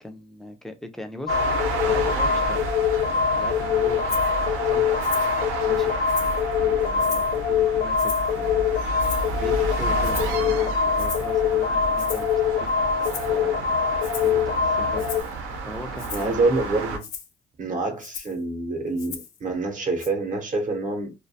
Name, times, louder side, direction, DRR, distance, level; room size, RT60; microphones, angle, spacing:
voice 1, 0.0-2.8 3.3-4.3 4.7-4.9 5.6-6.1 6.6-8.9 9.4-12.7 13.3-15.1 15.7-16.5, left 1 dB, ahead, 0.3 m, -39 dB
sound 1, 1.3-15.2, left 6 dB, 60° left, 0.5 m, -23 dB
sound 2, 1.3-17.0, right 3 dB, 85° right, 0.7 m, -31 dB
Rattle (instrument), 4.1-4.3 5.0-5.4 5.8-6.4 7.0-7.4 8.0-8.4 9.0-9.4 10.0-10.4 11.0-11.3 12.0-12.3 13.0-13.4 14.0-14.4 15.0-15.3 16.0-16.3 17.0-17.3 18.0-18.4 19.0-19.4 20.0-20.1, left 7 dB, 90° left, 0.7 m, -38 dB
voice 2, 16.1-17.1 17.6-21.1, right 3 dB, 40° right, 0.7 m, -26 dB
2.3 x 2.1 x 2.6 m
cardioid pair, 120°, 21 cm